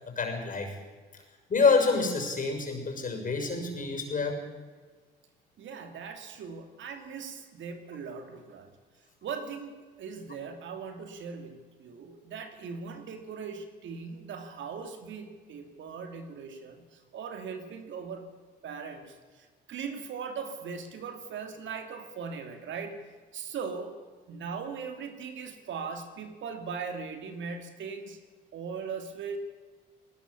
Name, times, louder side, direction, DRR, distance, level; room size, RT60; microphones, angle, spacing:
voice 1, 0.2-0.7 1.5-4.4, left 4 dB, 40° left, 4 dB, 6.4 m, -27 dB
voice 2, 5.6-8.7 9.2-18.3 18.6-23.0 23.3-24.0 24.3-28.2 28.5-29.4, right 5 dB, 65° right, 7 dB, 2.8 m, -39 dB
19.5 x 18.0 x 8.5 m, 1.4 s
supercardioid pair, 70°, 21 cm